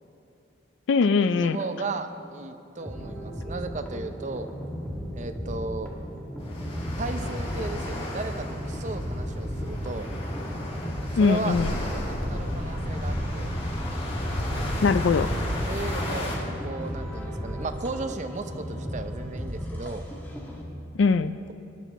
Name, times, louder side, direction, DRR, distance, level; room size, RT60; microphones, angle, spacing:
voice 1, 0.9-1.6 11.2-11.7 14.8-15.3 20.9-21.4, left 4 dB, 85° left, 13 dB, 0.4 m, -21 dB
voice 2, 1.4-4.5 5.1-5.9 7.0-10.1 11.2-13.5 15.7-20.1, right 3 dB, 40° right, 8 dB, 0.6 m, -35 dB
sound 1, 2.8-20.6, equal, 10° left, 1.7 m, -36 dB
sound 2, 6.4-16.4, left 1 dB, 30° left, 2.2 m, -32 dB
18.0 x 10.0 x 4.1 m, 2.7 s
head